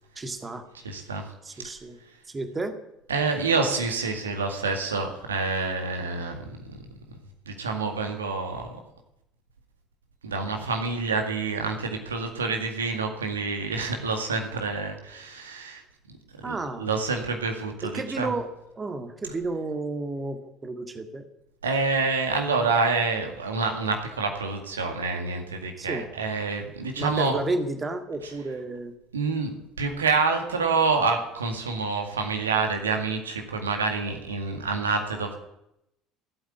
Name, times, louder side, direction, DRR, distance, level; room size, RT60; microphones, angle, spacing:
voice 1, 0.2-0.6 1.4-2.0 2.3-2.8 16.4-16.9 17.9-18.5 18.8-20.4 20.6-21.2 25.8-26.1 27.0-28.9, right 2 dB, 25° right, 7 dB, 2.0 m, -31 dB
voice 2, 0.8-1.7 3.1-6.5 7.5-8.8 10.2-15.8 16.4-18.3 21.6-27.4 28.2-28.3 29.1-29.5 29.8-35.4, right 4 dB, 80° right, 4 dB, 2.0 m, -27 dB
15.5 x 8.7 x 9.4 m, 0.83 s
figure-of-eight pair, 60°, 0 cm